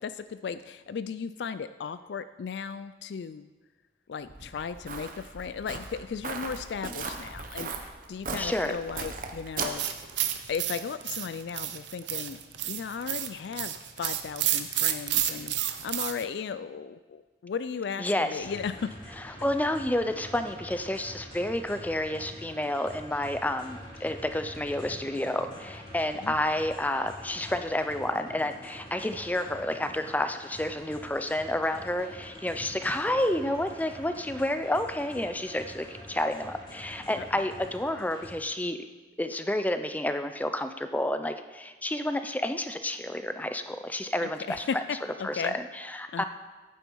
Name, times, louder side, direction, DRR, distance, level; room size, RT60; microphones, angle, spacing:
voice 1, 0.0-3.5 4.1-7.7 8.1-9.8 10.5-12.4 12.7-18.9 26.2-26.4 37.2-37.4 44.2-44.8 45.2-45.6 46.1-46.2, left 6 dB, 70° left, 13 dB, 0.4 m, -36 dB
Walk footsteps, 4.3-10.6, right 4 dB, 50° right, 1.0 m, -38 dB
voice 2, 8.4-8.8 18.0-18.5 19.2-38.8 39.2-44.8 45.2-46.2, left 1 dB, 10° left, 8 dB, 0.5 m, -30 dB
sound 1, 9.8-16.2, right 12 dB, 80° right, 0.8 m, -31 dB
sound 2, 18.4-38.3, equal, 25° left, 2.8 m, -46 dB
11.5 x 9.0 x 4.6 m, 1.3 s
head